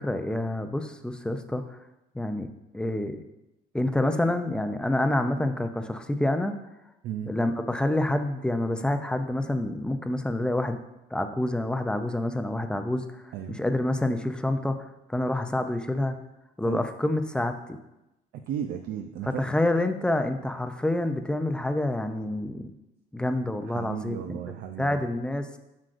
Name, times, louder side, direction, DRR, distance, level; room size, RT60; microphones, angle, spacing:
voice 1, 0.0-1.8 2.1-2.5 2.7-3.2 3.7-6.5 7.3-10.8 11.1-14.8 15.1-16.1 16.6-17.8 19.3-22.7 23.1-24.4 24.8-25.5, left 1 dB, 5° left, 7 dB, 0.5 m, -27 dB
voice 2, 18.3-19.4 23.7-25.0, right 9 dB, 70° right, 5 dB, 0.5 m, -34 dB
7.5 x 6.3 x 2.5 m, 0.94 s
cardioid pair, 110°, 17 cm